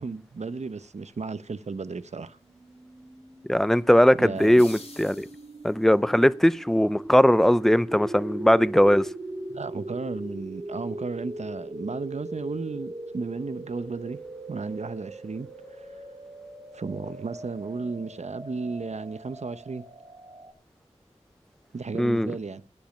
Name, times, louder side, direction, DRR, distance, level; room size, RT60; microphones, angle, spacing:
voice 1, 0.0-2.4 4.2-4.6 9.5-14.2 14.5-15.5 15.8-15.9 16.7-19.8 21.7-22.6, right 4 dB, 65° right, 0.8 m, -34 dB
sound 1, 1.6-20.5, right 1 dB, 40° right, 4.4 m, -40 dB
voice 2, 3.5-5.3 5.6-9.1 22.0-22.3, equal, 5° left, 0.5 m, -19 dB
sound 2, 4.3-5.9, left 2 dB, 60° left, 3.1 m, -47 dB
15.5 x 5.3 x 7.1 m
wide cardioid pair, 80°, 12 cm